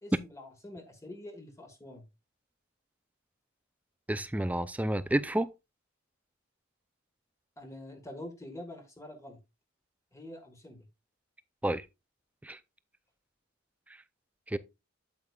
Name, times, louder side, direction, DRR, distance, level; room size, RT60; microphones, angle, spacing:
voice 1, 0.0-2.1 7.6-9.4 10.1-10.9, left 1 dB, 15° left, 1.4 m, -46 dB
voice 2, 4.1-5.5 11.6-11.8 12.4-12.6 14.5-14.6, right 1 dB, 5° right, 0.4 m, -30 dB
8.9 x 8.2 x 2.3 m
head